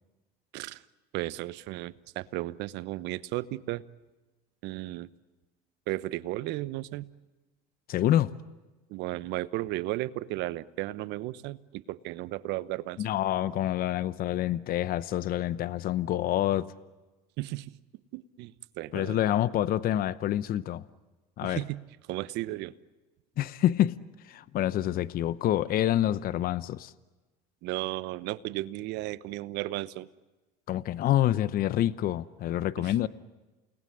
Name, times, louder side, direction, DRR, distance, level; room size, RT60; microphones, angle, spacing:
voice 1, 1.1-3.8 4.6-5.1 5.9-7.1 8.9-13.0 17.4-17.7 18.1-19.2 21.4-21.8 22.1-22.7 27.6-30.1 32.8-32.9, right 17 dB, 60° right, 1.0 m, -34 dB
voice 2, 7.9-8.3 13.0-16.7 18.9-20.8 21.4-21.6 23.4-24.0 24.3-26.9 30.7-33.1, left 12 dB, 50° left, 0.9 m, -27 dB
29.0 x 19.5 x 9.8 m
hypercardioid pair, 80°, 20 cm